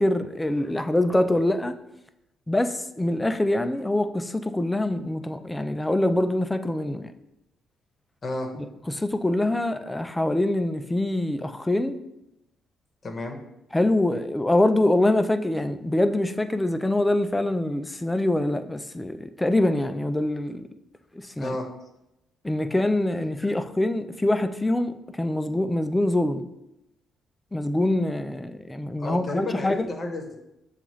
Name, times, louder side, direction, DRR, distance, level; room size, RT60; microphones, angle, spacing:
voice 1, 0.0-1.8 2.5-7.1 8.9-12.0 13.7-20.7 21.1-21.6 22.4-26.5 27.5-29.9, left 1 dB, 10° left, 9 dB, 0.3 m, -24 dB
voice 2, 13.0-13.4 21.4-21.6 29.0-30.4, left 2 dB, 35° left, 3 dB, 0.9 m, -31 dB
6.9 x 2.4 x 3.1 m, 0.88 s
cardioid pair, 90°, 0 cm